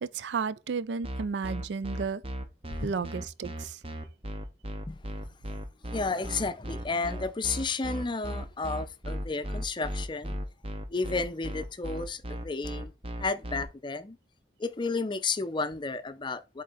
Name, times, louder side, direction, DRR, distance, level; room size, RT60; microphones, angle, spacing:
voice 1, 0.0-2.2 2.8-3.8, right 5 dB, 75° right, 0.4 m, -33 dB
sound 1, 1.0-13.6, equal, 35° right, 0.9 m, -36 dB
voice 2, 5.9-10.4 10.9-12.9 13.2-14.2 14.6-16.6, left 3 dB, 25° left, 0.5 m, -32 dB
7.6 x 3.8 x 4.0 m
head